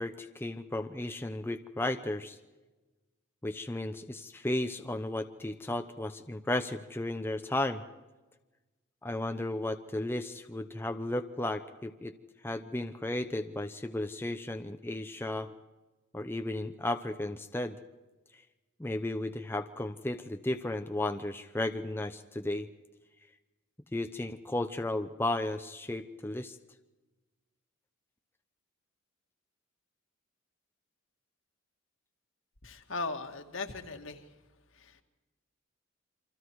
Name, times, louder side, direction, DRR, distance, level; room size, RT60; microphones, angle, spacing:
voice 1, 0.0-2.4 3.4-7.8 9.0-12.1 12.4-15.5 16.1-17.8 18.8-22.7 23.9-26.6, left 1 dB, 10° left, 7 dB, 0.8 m, -34 dB
voice 2, 32.6-34.3 34.7-35.0, left 3 dB, 70° left, 5 dB, 2.1 m, -38 dB
27.5 x 25.5 x 4.8 m, 1.2 s
head